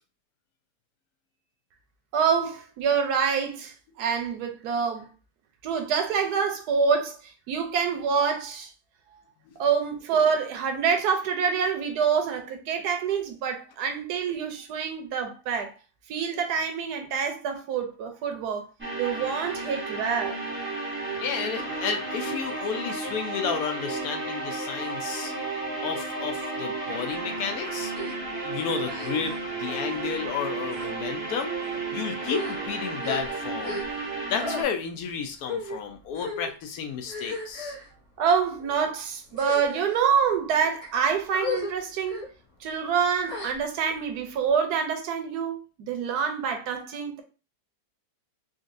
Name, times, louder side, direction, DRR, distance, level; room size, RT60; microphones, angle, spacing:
voice 1, 2.1-5.1 5.6-8.7 9.6-15.7 16.1-18.7 19.0-20.4 38.2-42.2 42.6-47.2, right 6 dB, 75° right, 1.1 m, -26 dB
sound 1, 18.8-34.6, right 3 dB, 10° right, 0.9 m, -33 dB
voice 2, 21.2-25.3 25.8-27.9 28.4-31.6 31.9-33.8 34.3-37.8, left 7 dB, 70° left, 1.0 m, -32 dB
sound 2, 27.9-28.1 28.8-29.4 29.7-30.0 30.6-30.9 31.6-31.8 32.2-34.1 34.4-34.6 35.4-35.8 36.1-36.5 37.1-37.9 38.6-38.8 39.3-40.0 40.6-40.9 41.3-41.7 42.0-42.3 43.3-43.9, left 2 dB, 40° left, 1.3 m, -35 dB
3.8 x 2.4 x 2.5 m
omnidirectional pair, 1.8 m